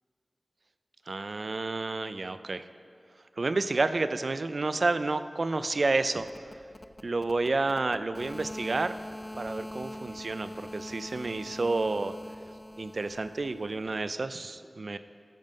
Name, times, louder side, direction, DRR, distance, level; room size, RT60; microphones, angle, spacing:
voice 1, 1.1-2.6 3.4-6.3 7.0-9.0 9.4-12.2 12.8-15.0, right 3 dB, 70° right, 11 dB, 0.4 m, -30 dB
sound 1, 6.2-14.1, left 1 dB, 35° left, 0.4 m, -43 dB
14.5 x 5.3 x 5.3 m, 2.4 s
wide cardioid pair, 70°, 0 cm